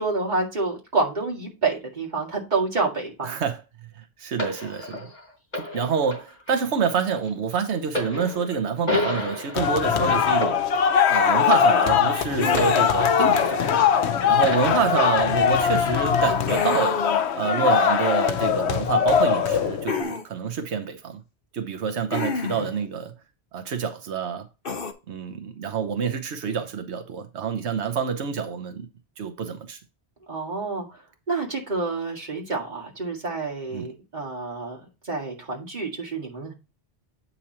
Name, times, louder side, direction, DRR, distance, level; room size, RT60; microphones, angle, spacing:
voice 1, 0.0-3.4 14.1-14.5 30.3-31.0 31.3-34.8 35.0-36.5, right 3 dB, 45° right, 2.1 m, -28 dB
voice 2, 3.2-3.6 4.0-5.0 5.7-10.6 11.1-13.6 14.3-17.1 17.3-21.2 21.5-23.1 23.5-24.5 25.1-28.9 29.2-29.8 33.7-33.9, right 6 dB, 90° right, 1.1 m, -27 dB
sound 1, 4.4-14.0 14.4-15.5 16.2-16.4, left 1 dB, 40° left, 4.4 m, -32 dB
sound 2, 9.5-20.0, left 7 dB, 80° left, 0.9 m, -21 dB
sound 3, 12.4-13.2 16.5-17.3 19.9-20.2 22.1-22.8 24.6-24.9, left 4 dB, 55° left, 1.2 m, -30 dB
8.5 x 5.6 x 2.8 m
omnidirectional pair, 1.1 m